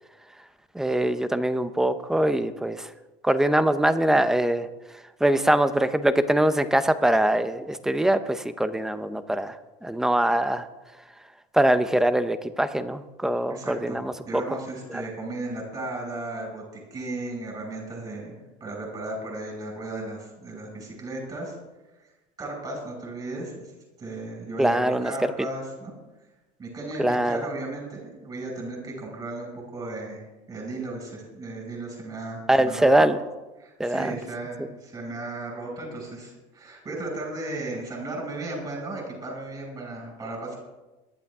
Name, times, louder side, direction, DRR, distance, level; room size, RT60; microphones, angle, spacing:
voice 1, 0.7-2.9 3.2-4.7 5.2-10.7 11.5-14.4 24.6-25.1 27.0-27.5 32.5-33.2 33.8-34.2, right 1 dB, 5° right, 11 dB, 0.7 m, -23 dB
voice 2, 13.5-14.0 14.3-21.5 22.0-22.1 22.4-23.7 24.0-25.9 26.6-33.1 33.6-40.6, right 2 dB, 25° right, -1 dB, 5.8 m, -35 dB
23.5 x 11.5 x 3.6 m, 1.1 s
cardioid pair, 155°, 19 cm